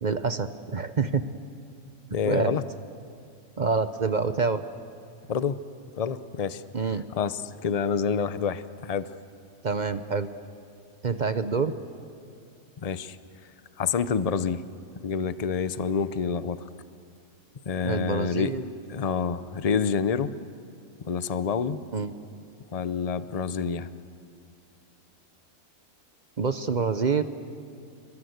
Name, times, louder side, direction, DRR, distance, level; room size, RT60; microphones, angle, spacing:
voice 1, 0.0-1.2 2.2-2.6 3.6-4.6 6.7-7.0 9.6-10.3 11.0-11.7 17.8-18.7 21.9-22.1 26.4-27.2, right 4 dB, 40° right, 11 dB, 0.7 m, -26 dB
voice 2, 2.1-2.6 5.3-5.6 6.0-6.6 7.1-9.1 12.8-13.2 13.8-14.6 15.0-16.6 17.7-18.5 18.9-20.3 21.1-21.8 22.7-23.9, left 6 dB, 40° left, 13 dB, 0.5 m, -27 dB
28.5 x 23.0 x 8.1 m, 2.4 s
omnidirectional pair, 1.6 m